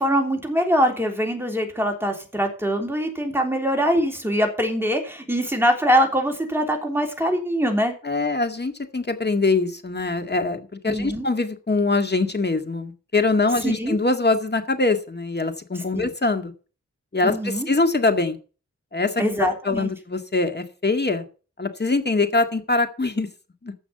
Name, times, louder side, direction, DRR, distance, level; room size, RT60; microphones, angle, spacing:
voice 1, 0.0-7.9 10.9-11.3 13.6-14.0 15.9-16.1 17.2-17.7 19.2-19.9, equal, 10° right, 2 dB, 3.3 m, -23 dB
voice 2, 8.0-16.5 17.1-18.4 18.9-21.2 21.6-23.3 23.6-23.7, left 3 dB, 35° left, 7 dB, 1.9 m, -23 dB
14.5 x 6.0 x 6.9 m, 0.37 s
wide cardioid pair, 75°, 30 cm